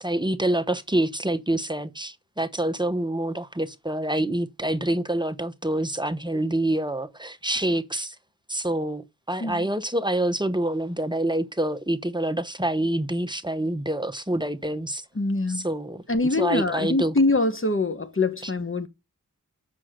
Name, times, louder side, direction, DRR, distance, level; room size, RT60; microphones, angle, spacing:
voice 1, 0.0-8.1 8.5-15.0 15.5-16.0 16.4-17.1 18.4-18.5, right 1 dB, 15° right, 0.9 m, -26 dB
voice 2, 15.2-15.6 16.1-18.9, left 2 dB, 40° left, 1.2 m, -24 dB
7.4 x 6.3 x 6.5 m
wide cardioid pair, 45°, 32 cm